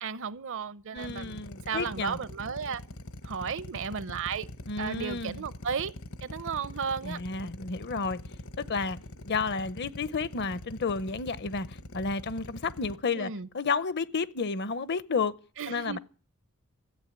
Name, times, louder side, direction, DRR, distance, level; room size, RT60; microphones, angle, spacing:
voice 1, 0.0-2.8 3.2-4.5 4.8-5.9 6.2-7.2 13.1-13.5 15.6-16.0, right 6 dB, 60° right, 0.6 m, -34 dB
voice 2, 0.9-2.2 4.7-5.4 7.0-8.2 8.6-9.0 9.2-15.3 15.7-16.0, left 4 dB, 50° left, 0.7 m, -31 dB
Drill, 1.0-12.9, left 1 dB, 70° left, 1.3 m, -43 dB
14.0 x 8.2 x 9.5 m
head